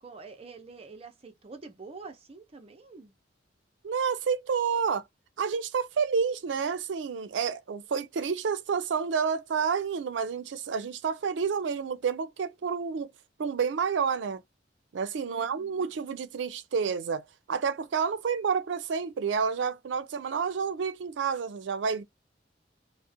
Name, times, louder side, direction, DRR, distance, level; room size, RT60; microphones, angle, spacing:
voice 1, 0.0-3.1 15.2-15.9, right 4 dB, 35° right, 0.6 m, -47 dB
voice 2, 3.8-5.0 5.4-13.1 13.4-14.4 14.9-22.0, right 6 dB, 80° right, 0.4 m, -29 dB
2.4 x 2.0 x 2.6 m
head